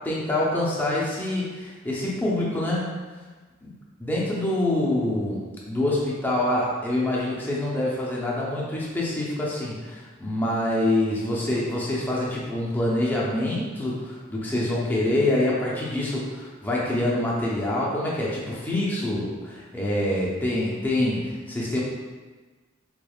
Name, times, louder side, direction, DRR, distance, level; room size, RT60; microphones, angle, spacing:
voice 1, 0.0-3.0 3.6-3.7 4.0-21.8, left 1 dB, 10° left, -5 dB, 0.6 m, -26 dB
4.0 x 3.3 x 2.3 m, 1.4 s
head